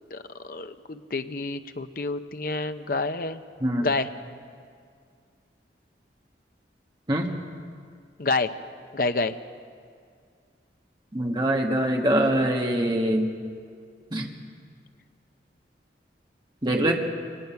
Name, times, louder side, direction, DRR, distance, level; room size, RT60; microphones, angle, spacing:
voice 1, 0.4-3.4 3.8-4.1 8.2-8.5 8.9-9.4, left 3 dB, 55° left, 9 dB, 0.7 m, -28 dB
voice 2, 11.1-13.3 14.1-14.3 16.6-16.9, right 1 dB, 25° right, 1 dB, 1.5 m, -23 dB
23.5 x 19.0 x 5.8 m, 2.2 s
head